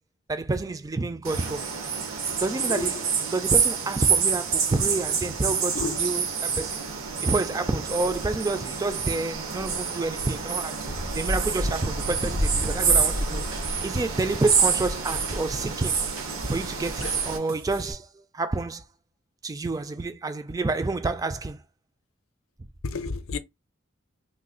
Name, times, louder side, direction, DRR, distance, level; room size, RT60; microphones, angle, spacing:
voice 1, 0.3-1.6 2.4-3.1 3.3-6.8 7.2-10.8 11.1-13.5 13.8-16.0 16.4-18.8 19.4-21.6, right 3 dB, 15° right, 0.3 m, -28 dB
sound 1, 1.2-17.4, right 5 dB, 85° right, 1.1 m, -27 dB
voice 2, 2.7-3.0 5.7-6.0 8.1-8.2 17.0-17.1 22.8-23.4, left 4 dB, 70° left, 0.5 m, -32 dB
sound 2, 10.9-17.9, right 3 dB, 65° right, 1.1 m, -45 dB
3.1 x 2.3 x 3.7 m
head